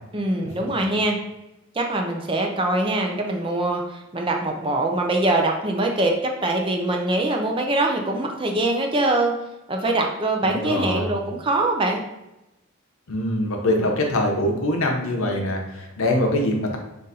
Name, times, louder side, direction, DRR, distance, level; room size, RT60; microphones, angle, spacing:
voice 1, 0.1-1.2 1.7-9.3 9.7-12.0, right 2 dB, 25° right, 2 dB, 0.4 m, -23 dB
voice 2, 10.4-11.1 13.1-16.8, left 1 dB, 85° left, 2 dB, 0.8 m, -23 dB
3.8 x 2.5 x 4.1 m, 0.93 s
head